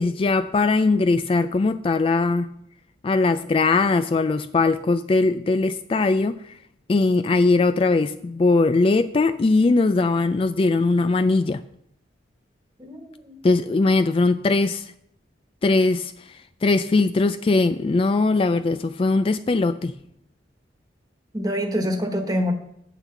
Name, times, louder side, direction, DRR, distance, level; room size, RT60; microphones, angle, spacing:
voice 1, 0.0-2.5 3.0-6.5 6.9-11.6 13.4-14.9 15.6-16.3 16.6-19.9, left 3 dB, 30° left, 11 dB, 0.3 m, -20 dB
voice 2, 12.8-13.4 21.3-22.5, equal, 20° right, 5 dB, 1.4 m, -26 dB
9.7 x 5.8 x 8.2 m, 0.75 s
head